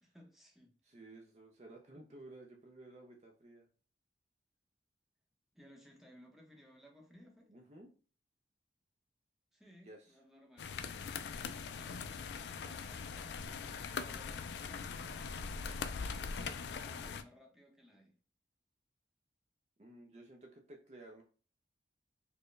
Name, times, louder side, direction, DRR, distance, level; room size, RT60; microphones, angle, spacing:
voice 1, 0.0-0.7 5.5-7.5 9.5-10.7 12.6-13.6 14.0-16.2 16.8-18.2, equal, ahead, -1 dB, 0.8 m, -61 dB
voice 2, 0.8-3.7 7.5-7.9 9.8-10.1 19.8-21.2, right 2 dB, 40° right, 2 dB, 0.5 m, -54 dB
sound 1, 10.6-17.2, left 5 dB, 75° left, 0.3 m, -41 dB
4.3 x 2.2 x 3.2 m, 0.38 s
head